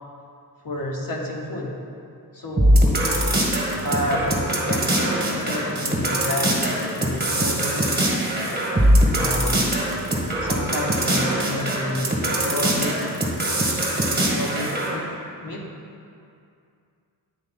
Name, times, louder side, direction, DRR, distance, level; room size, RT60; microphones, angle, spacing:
voice 1, 0.6-1.7 2.3-2.9 3.8-8.2 9.1-9.7 10.4-12.1 12.4-13.1 14.3-15.1 15.4-15.7, left 1 dB, 50° left, -2 dB, 1.1 m, -30 dB
sound 1, 2.6-15.0, right 1 dB, 20° right, 1.5 m, -22 dB
9.0 x 3.2 x 4.2 m, 2.4 s
cardioid pair, 65°, 44 cm